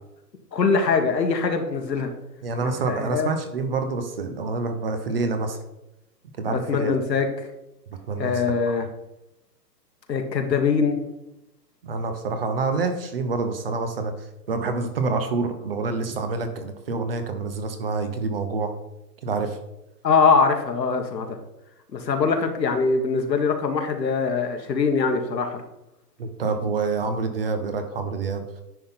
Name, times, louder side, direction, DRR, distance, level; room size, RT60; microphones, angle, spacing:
voice 1, 0.5-2.1 2.6-3.3 6.4-7.5 8.2-8.9 10.1-11.0 20.0-21.3 21.9-25.6, left 5 dB, 90° left, 5 dB, 1.7 m, -22 dB
voice 2, 2.4-5.6 6.4-6.9 8.1-8.5 11.8-18.7 19.2-19.6 26.2-28.4, right 4 dB, 35° right, 7 dB, 0.9 m, -27 dB
10.0 x 3.9 x 5.7 m, 0.88 s
hypercardioid pair, 165°, 49 cm